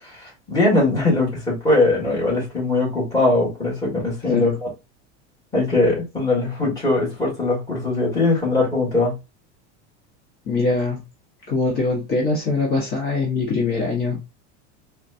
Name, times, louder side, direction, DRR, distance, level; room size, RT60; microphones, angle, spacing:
voice 1, 0.0-4.7 5.5-9.2, left 2 dB, 10° left, 1.7 m, -21 dB
voice 2, 4.3-4.6 10.5-11.0 11.5-14.2, left 3 dB, 35° left, 1.2 m, -22 dB
4.1 x 2.3 x 2.6 m
supercardioid pair, 170°, 34 cm